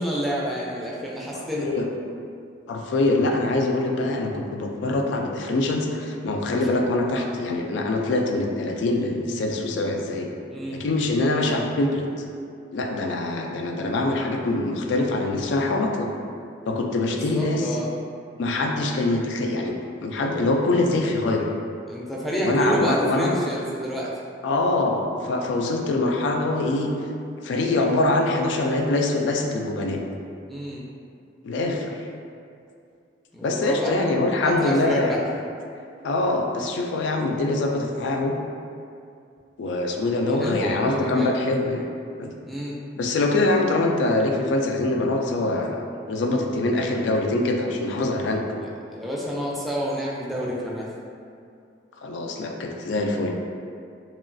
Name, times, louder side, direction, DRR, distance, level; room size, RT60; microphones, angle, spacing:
voice 1, 0.0-1.7 10.5-10.8 17.3-17.9 21.9-24.1 30.5-30.8 33.3-34.1 34.4-35.2 40.1-41.4 42.5-42.8 48.6-50.9, equal, ahead, -5 dB, 0.3 m, -29 dB
voice 2, 1.3-1.9 2.7-10.3 10.7-12.1 12.7-16.1 16.7-17.7 18.4-19.8 20.0-21.5 22.4-23.3 24.4-26.9 27.4-30.0 31.4-31.9 33.4-35.2 36.0-38.3 39.6-41.8 42.2-42.3 43.0-48.4 52.0-53.3, left 2 dB, 85° left, 2 dB, 0.3 m, -24 dB
2.9 x 2.3 x 2.5 m, 2.4 s
head